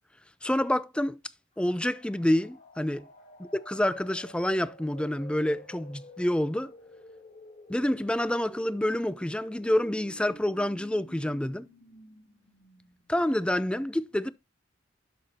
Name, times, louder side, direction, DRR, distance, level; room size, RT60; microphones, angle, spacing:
voice 1, 0.4-1.2 1.6-3.1 3.4-6.7 7.7-11.7 13.1-14.3, left 1 dB, 5° left, 0.4 m, -28 dB
sound 1, 1.6-13.2, equal, 45° left, 2.0 m, -51 dB
11.0 x 6.1 x 2.8 m
head